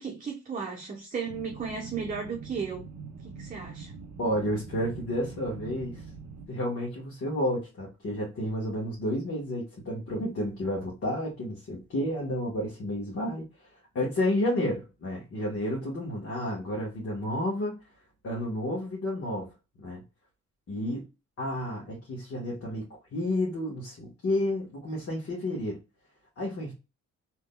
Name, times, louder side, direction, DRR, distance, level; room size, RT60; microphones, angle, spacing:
voice 1, 0.0-2.8 3.4-3.9, right 5 dB, 25° right, 0.8 m, -34 dB
sound 1, 1.3-6.5, right 5 dB, 65° right, 0.7 m, -44 dB
voice 2, 4.2-6.0 6.5-13.7 13.9-17.8 18.2-19.5 19.8-20.0 20.7-21.1 21.4-22.8 23.1-25.8 26.4-26.7, left 1 dB, 50° left, 1.4 m, -31 dB
3.5 x 2.9 x 2.2 m
cardioid pair, 90°, 30 cm